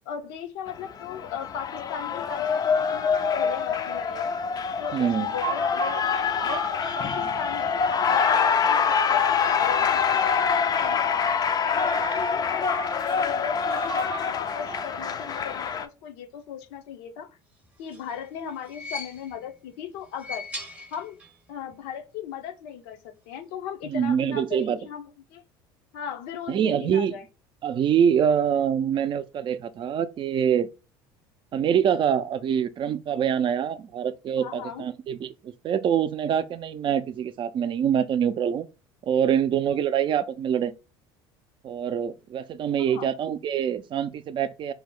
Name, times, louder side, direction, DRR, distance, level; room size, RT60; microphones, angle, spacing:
voice 1, 0.1-4.3 4.8-6.6 6.9-10.3 10.8-11.3 11.7-17.3 17.8-20.5 20.9-21.2 21.5-25.4 25.9-27.3 34.4-34.8 42.8-43.1, left 8 dB, 75° left, 0.6 m, -37 dB
Cheering, 0.7-15.9, left 6 dB, 30° left, 0.4 m, -25 dB
sound 1, 4.7-7.5 7.9-9.7 10.4-11.5 11.8-13.2 13.7-15.5, right 5 dB, 85° right, 0.6 m, -38 dB
voice 2, 4.9-5.3 23.8-24.8 26.5-27.2 27.6-30.7 31.5-38.7 39.1-40.7 41.6-44.7, right 8 dB, 40° right, 0.4 m, -25 dB
sound 2, 17.6-19.6 20.0-21.5 21.7-21.8 22.9-23.0, left 2 dB, 10° right, 0.7 m, -40 dB
2.7 x 2.0 x 3.7 m
hypercardioid pair, 80°, 13 cm